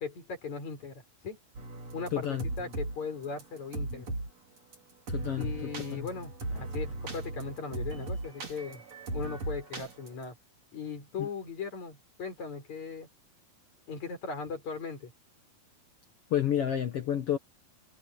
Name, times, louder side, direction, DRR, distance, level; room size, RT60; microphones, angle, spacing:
voice 1, 0.0-1.4 1.9-4.1 5.4-8.8 9.1-10.4 10.7-13.1 13.9-15.1, left 5 dB, 50° left, 7.6 m, -38 dB
sound 1, 1.6-3.0 3.2-4.3 4.7-4.8 5.1-10.3, right 2 dB, 45° right, 5.8 m, -37 dB
voice 2, 2.1-2.4 5.1-5.5 5.9-6.1 11.2-11.3 16.3-17.4, left 10 dB, 70° left, 1.4 m, -29 dB
omnidirectional pair, 4.3 m